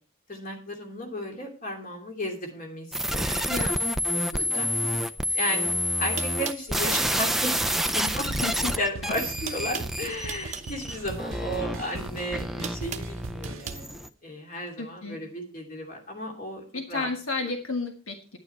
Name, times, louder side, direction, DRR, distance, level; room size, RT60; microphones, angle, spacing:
voice 1, 0.3-3.6 4.4-4.7 5.3-5.7 6.0-8.3 8.6-16.6 16.9-17.1, left 1 dB, 40° left, 1 dB, 2.8 m, -34 dB
sound 1, 2.9-14.1, equal, ahead, 0.4 m, -29 dB
voice 2, 3.5-3.9 4.3-4.5 5.3-5.4 8.4-8.8 9.0-9.1 14.8-15.2 16.7-18.4, left 3 dB, 75° left, 3 dB, 1.6 m, -32 dB
sound 2, 5.7-5.8 6.2-7.4 8.6-8.9 9.2-10.7 11.9-13.8, right 7 dB, 35° right, 0.8 m, -39 dB
sound 3, 7.0-7.2 7.4-7.8 8.1-13.9, right 4 dB, 70° right, 0.6 m, -41 dB
10.5 x 9.5 x 4.5 m, 0.38 s
head